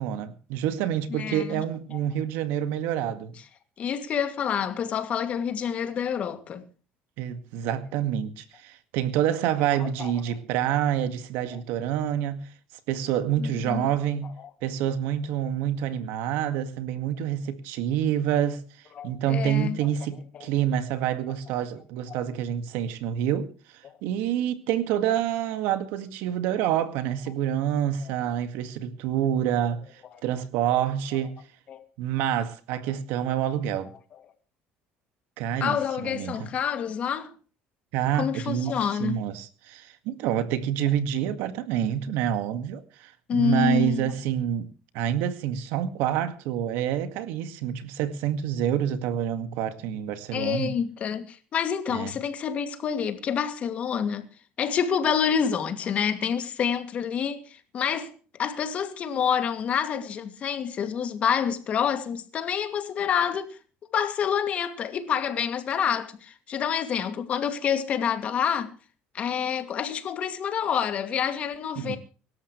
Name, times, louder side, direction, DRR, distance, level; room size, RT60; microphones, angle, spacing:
voice 1, 0.0-3.3 7.2-12.4 12.9-14.3 14.6-18.6 19.0-31.4 32.0-33.9 35.4-35.8 36.0-36.4 37.9-38.7 39.0-44.7 44.9-50.7 51.9-52.1 71.8-72.0, right 10 dB, 80° right, 2.0 m, -27 dB
voice 2, 1.1-1.6 1.9-2.0 3.8-6.6 9.8-10.1 13.4-13.9 14.4-14.5 15.4-15.5 19.0-19.8 20.4-20.5 22.1-22.2 28.0-28.1 31.7-31.8 35.6-37.3 38.1-39.2 43.3-44.1 50.3-54.3 54.6-58.1 58.4-63.6 63.9-68.7 69.1-72.0, left 7 dB, 40° left, 2.4 m, -28 dB
25.0 x 13.0 x 3.2 m
cardioid pair, 150°, 4 cm